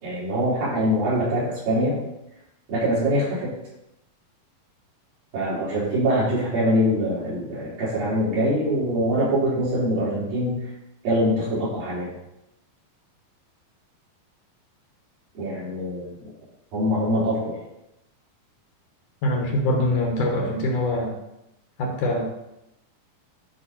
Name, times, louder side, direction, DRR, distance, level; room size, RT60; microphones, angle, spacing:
voice 1, 0.0-2.0 2.7-3.5 5.3-10.6 11.0-12.1 15.3-16.2 16.7-17.6, equal, 65° right, -9 dB, 5.9 m, -23 dB
voice 2, 19.2-21.1 21.8-22.2, left 1 dB, 65° left, 1 dB, 2.4 m, -23 dB
12.0 x 5.5 x 4.2 m, 0.88 s
omnidirectional pair, 4.4 m